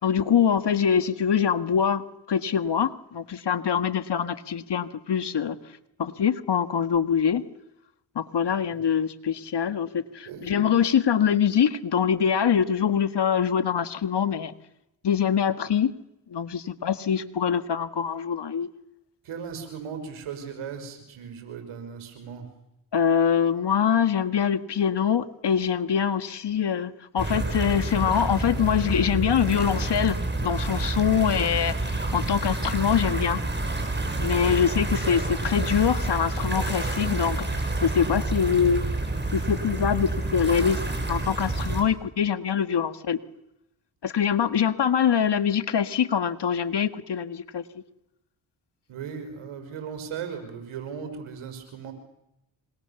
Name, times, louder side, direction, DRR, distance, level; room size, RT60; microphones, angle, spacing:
voice 1, 0.0-5.6 6.0-7.4 8.2-14.5 15.0-15.9 16.3-18.7 22.9-30.2 30.4-33.4 34.2-38.8 39.3-43.2 44.0-47.6, left 8 dB, 55° left, 10 dB, 1.8 m, -24 dB
voice 2, 19.2-22.5 48.9-51.9, right 7 dB, 80° right, 7 dB, 5.4 m, -37 dB
sound 1, 27.2-41.8, right 2 dB, 20° right, 6.6 m, -28 dB
25.5 x 25.5 x 7.1 m, 0.85 s
supercardioid pair, 45°, 49 cm